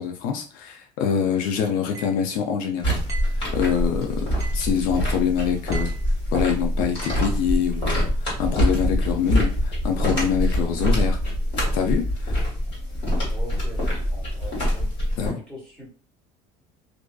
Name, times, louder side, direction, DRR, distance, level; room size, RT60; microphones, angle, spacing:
voice 1, 0.0-3.0 3.5-4.3 4.5-5.9 6.3-11.2 11.7-12.4 15.2-15.4, left 7 dB, 70° left, 4 dB, 0.4 m, -25 dB
sound 1, 1.9-2.2 3.1-3.4 4.4-4.7 5.7-6.1 7.0-7.3, right 4 dB, 25° right, 0.8 m, -39 dB
sound 2, 2.8-15.3, equal, 35° left, 1.4 m, -24 dB
voice 2, 13.3-14.9 15.2-15.9, equal, 5° left, -6 dB, 1.1 m, -42 dB
2.4 x 2.3 x 2.2 m, 0.41 s
cardioid pair, 155°, 15 cm